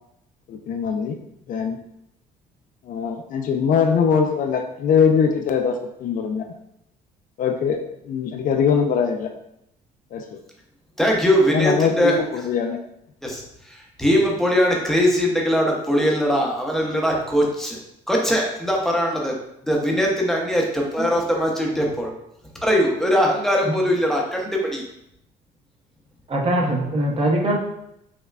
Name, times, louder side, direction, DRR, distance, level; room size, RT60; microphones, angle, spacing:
voice 1, 0.5-1.2 1.5-1.8 2.8-6.5 7.4-7.8 8.1-9.3 10.1-10.2 11.5-12.8, left 6 dB, 50° left, 5 dB, 0.4 m, -21 dB
voice 2, 11.0-12.2 13.2-17.8 18.1-19.3 19.6-22.1 22.6-24.8, equal, ahead, -1 dB, 0.7 m, -21 dB
voice 3, 26.3-27.6, right 1 dB, 35° right, -1 dB, 0.8 m, -22 dB
5.3 x 2.1 x 2.4 m, 0.79 s
cardioid pair, 110°, 17 cm